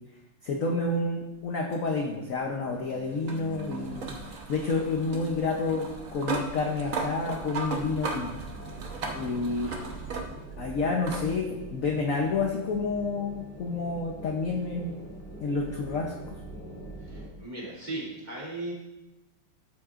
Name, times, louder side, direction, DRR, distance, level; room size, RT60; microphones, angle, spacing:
voice 1, 0.4-4.1 4.5-8.3 9.1-9.7 10.6-14.9 15.4-16.4, left 3 dB, 60° left, 1 dB, 0.8 m, -29 dB
sound 1, 1.7-10.6 11.1-11.3 12.6-12.7 15.6-15.7, right 4 dB, 50° right, 1.1 m, -37 dB
sound 2, 7.7-17.3, right 2 dB, 5° left, 2.4 m, -44 dB
voice 2, 9.6-10.4 17.0-18.7, right 2 dB, 20° right, -6 dB, 2.8 m, -39 dB
13.0 x 7.4 x 2.5 m, 1.0 s
omnidirectional pair, 2.4 m